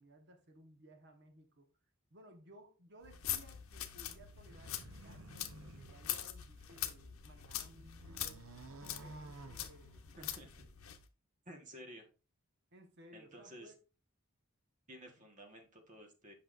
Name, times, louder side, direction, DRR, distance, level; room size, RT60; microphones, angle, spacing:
voice 1, 0.0-1.7 2.1-8.4 8.8-10.5 12.7-13.7, right 1 dB, 55° right, 1.2 m, -60 dB
sound 1, 3.0-11.0, left 11 dB, 70° left, 0.8 m, -44 dB
sound 2, 4.3-7.0 7.4-10.3, right 2 dB, 70° right, 0.8 m, -54 dB
voice 2, 10.1-10.7 11.4-12.1 13.1-13.7 14.9-16.3, equal, 35° right, 1.3 m, -53 dB
8.0 x 5.7 x 2.5 m
head